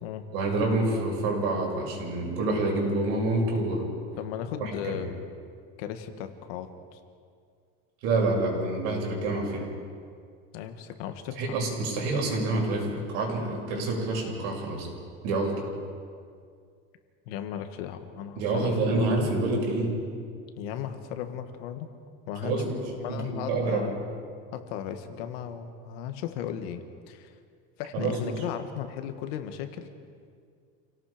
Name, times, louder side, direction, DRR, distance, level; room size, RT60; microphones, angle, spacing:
voice 1, 0.3-3.9 4.6-5.0 8.0-9.7 11.4-14.9 15.2-15.6 18.4-20.0 22.4-22.8 23.1-23.9 27.9-28.4, right 2 dB, 80° right, -1 dB, 6.8 m, -27 dB
voice 2, 4.2-5.1 5.8-7.0 10.5-11.6 17.3-19.1 20.6-21.9 22.3-22.6 23.0-24.0 24.5-27.3 27.8-29.9, left 9 dB, 85° left, 7 dB, 1.8 m, -36 dB
28.5 x 18.0 x 5.1 m, 2.2 s
cardioid pair, 175°, 30 cm